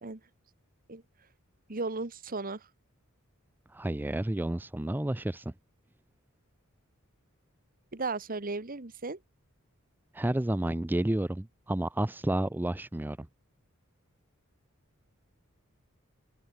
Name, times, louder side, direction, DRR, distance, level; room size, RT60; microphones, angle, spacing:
voice 1, 1.7-2.6 7.9-9.2, right 3 dB, 45° right, 1.5 m, -35 dB
voice 2, 3.7-5.5 10.1-13.3, right 1 dB, 10° right, 0.4 m, -30 dB
head